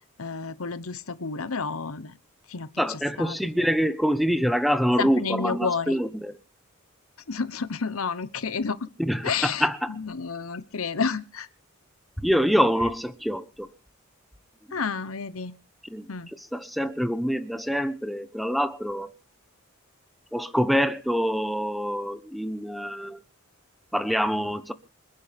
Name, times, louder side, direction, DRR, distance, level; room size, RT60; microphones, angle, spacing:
voice 1, 0.2-2.2 2.5-3.4 5.0-6.0 7.3-8.9 9.2-11.5 14.7-15.5 16.1-16.3, left 5 dB, 80° left, 1.0 m, -30 dB
voice 2, 2.8-6.3 9.0-9.9 12.2-13.7 15.9-16.0 16.5-19.1 20.3-23.2 23.9-24.7, equal, ahead, 1.0 m, -25 dB
26.5 x 10.5 x 3.5 m
head